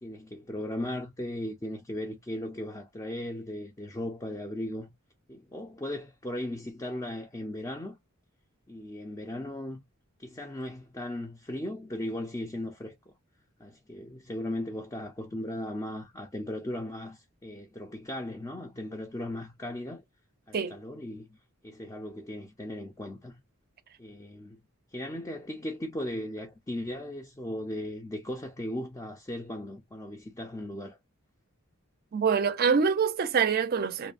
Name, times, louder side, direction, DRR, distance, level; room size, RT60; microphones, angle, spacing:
voice 1, 0.0-4.9 5.3-8.0 8.7-9.8 10.2-13.1 13.6-20.0 20.5-21.4 21.6-23.3 24.0-24.6 24.9-31.0, left 1 dB, 15° left, 0.4 m, -37 dB
voice 2, 32.1-34.1, right 6 dB, 45° right, 0.4 m, -25 dB
3.0 x 2.0 x 2.4 m
head